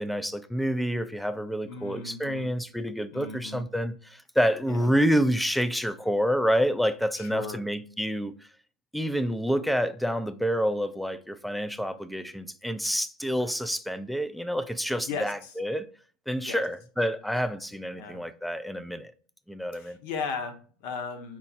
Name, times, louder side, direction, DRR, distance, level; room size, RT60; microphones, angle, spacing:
voice 1, 0.0-8.3 8.9-15.9 16.3-19.1 19.5-20.0, equal, ahead, 0.3 m, -28 dB
voice 2, 1.7-2.5 3.1-3.6 4.7-4.9 7.1-7.6 15.1-15.5 16.4-16.6 17.9-18.2 19.7-21.4, left 5 dB, 60° left, 0.9 m, -36 dB
4.6 x 2.1 x 4.0 m
hypercardioid pair, 105°, 5 cm